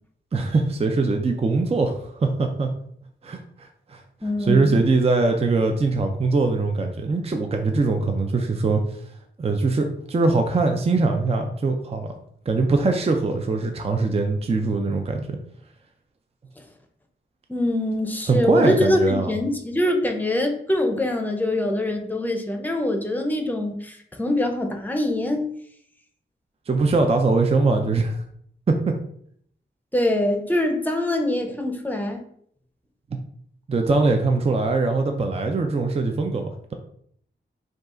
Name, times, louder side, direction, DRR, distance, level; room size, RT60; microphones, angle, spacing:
voice 1, 0.3-2.7 3.2-4.0 4.5-9.0 9.4-12.1 12.5-15.4 18.3-19.4 26.7-28.2 28.7-28.9 33.1-33.2 33.7-36.7, right 3 dB, 30° right, 4 dB, 0.4 m, -22 dB
voice 2, 4.2-4.8 17.5-25.5 29.9-32.2, left 1 dB, 10° left, 4 dB, 0.7 m, -23 dB
5.2 x 2.4 x 3.7 m, 0.66 s
wide cardioid pair, 110°, 20 cm